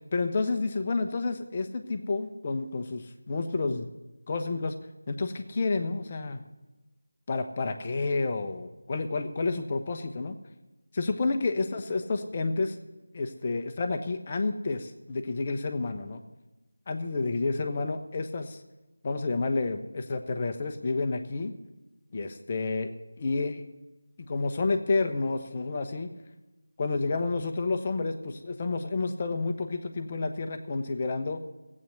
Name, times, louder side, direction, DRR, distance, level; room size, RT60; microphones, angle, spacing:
voice 1, 0.0-3.9 4.3-4.7 5.1-6.4 7.3-10.4 10.9-12.8 13.1-16.2 16.9-18.6 19.0-21.5 22.1-22.9 23.2-23.6 24.2-26.1 26.8-31.4, left 3 dB, 25° left, 7 dB, 1.0 m, -30 dB
15.5 x 8.6 x 8.0 m, 1.1 s
figure-of-eight pair, 165°, 0 cm